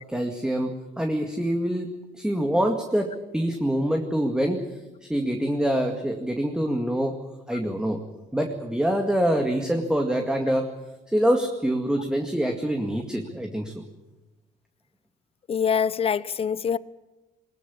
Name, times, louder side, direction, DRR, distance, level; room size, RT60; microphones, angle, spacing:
voice 1, 0.1-7.2 7.5-8.0 8.3-10.7 11.1-13.8, equal, 5° right, 2.1 m, -25 dB
voice 2, 15.5-16.8, left 7 dB, 35° left, 0.8 m, -24 dB
20.5 x 20.5 x 8.7 m
cardioid pair, 110°, 17 cm